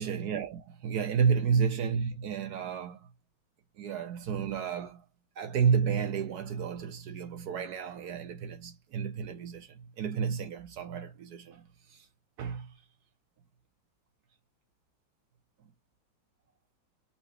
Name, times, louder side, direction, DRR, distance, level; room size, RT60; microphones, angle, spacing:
voice 1, 0.0-3.1 3.8-5.0 5.4-12.1 12.4-12.7, right 6 dB, 65° right, 1.1 m, -31 dB
5.7 x 2.8 x 3.1 m
omnidirectional pair, 2.0 m